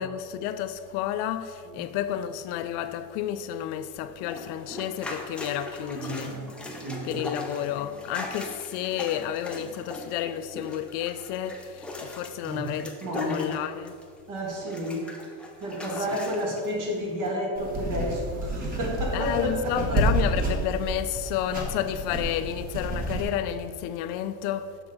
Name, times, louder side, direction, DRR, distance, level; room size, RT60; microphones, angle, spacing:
voice 1, 0.0-6.4 7.0-14.0 16.0-16.1 19.1-24.8, left 11 dB, 70° left, 0.6 m, -31 dB
Human voice, 1.9-2.2 3.2-3.3 3.9-4.1 5.1-5.2 5.5-6.9 7.2-10.7 11.1-11.2 12.0-12.1, left 2 dB, 35° left, 1.0 m, -49 dB
sound 1, 4.2-14.2 14.5-16.7 17.2-17.3, left 1 dB, 5° left, 0.5 m, -39 dB
voice 2, 5.9-6.5 6.8-7.3 12.4-12.7 13.0-13.5 14.3-15.1 15.6-20.2, equal, 50° right, 2.1 m, -31 dB
sound 2, 17.5-23.2, right 1 dB, 20° right, 1.1 m, -29 dB
7.2 x 6.2 x 4.9 m
cardioid pair, 170°, 42 cm